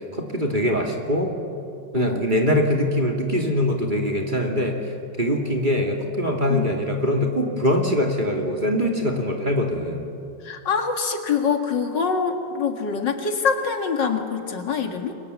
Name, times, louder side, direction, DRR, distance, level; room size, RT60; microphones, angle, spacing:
voice 1, 0.1-1.4 1.9-4.8 5.2-10.1, left 1 dB, 25° right, 1 dB, 2.8 m, -23 dB
voice 2, 10.4-15.1, left 6 dB, 70° left, 5 dB, 2.6 m, -24 dB
29.0 x 23.5 x 8.3 m, 2.6 s
omnidirectional pair, 2.0 m